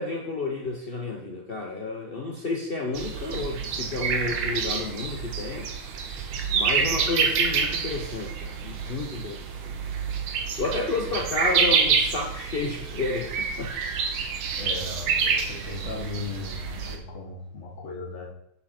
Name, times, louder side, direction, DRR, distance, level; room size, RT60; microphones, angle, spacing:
voice 1, 0.0-5.7 6.5-9.4 9.6-9.8 10.6-13.7, left 3 dB, 80° left, 1 dB, 0.5 m, -31 dB
sound 1, 2.9-17.0, right 5 dB, 75° right, 1.7 m, -27 dB
voice 2, 14.5-18.3, left 3 dB, 40° left, -3 dB, 1.4 m, -37 dB
7.6 x 6.5 x 4.3 m, 0.76 s
omnidirectional pair, 2.3 m